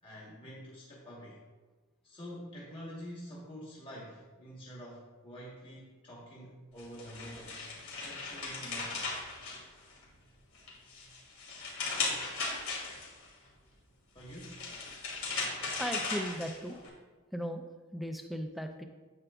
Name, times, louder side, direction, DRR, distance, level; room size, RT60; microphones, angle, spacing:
voice 1, 0.0-1.4 2.0-7.6 8.0-9.1 14.1-14.6, equal, 25° left, -5 dB, 1.1 m, -47 dB
sound 1, 6.8-10.1 10.5-13.3 14.2-16.9, left 3 dB, 70° left, 2.4 m, -37 dB
voice 2, 15.8-16.8 17.3-17.6 17.9-18.8, equal, ahead, 5 dB, 0.4 m, -37 dB
9.6 x 7.9 x 2.3 m, 1.3 s
head